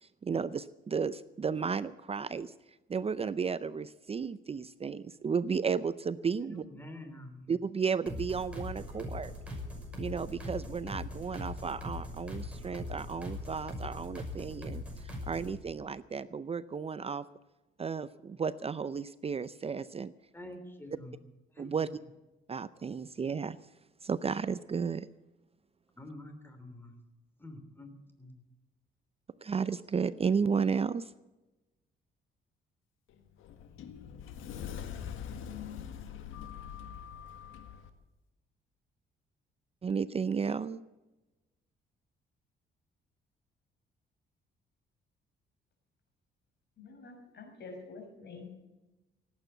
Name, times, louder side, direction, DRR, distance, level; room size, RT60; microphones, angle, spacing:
voice 1, 0.0-2.5 2.9-6.6 7.5-9.3 10.0-17.3 17.8-20.1 21.6-21.9 22.5-23.6 24.0-25.1 29.4-31.1 39.8-40.8, right 6 dB, 30° right, 15 dB, 0.5 m, -33 dB
voice 2, 6.5-7.4 20.3-21.2 21.5-21.9 26.0-26.9 27.4-28.4, left 1 dB, 10° left, 6 dB, 3.2 m, -47 dB
sound 1, 8.1-15.6, left 1 dB, 5° right, 6.2 m, -41 dB
Sliding door, 33.1-37.9, left 8 dB, 85° left, 1.7 m, -43 dB
voice 3, 46.8-48.5, left 3 dB, 60° left, 4 dB, 5.8 m, -47 dB
18.0 x 9.1 x 8.1 m, 1.1 s
cardioid pair, 90°, 20 cm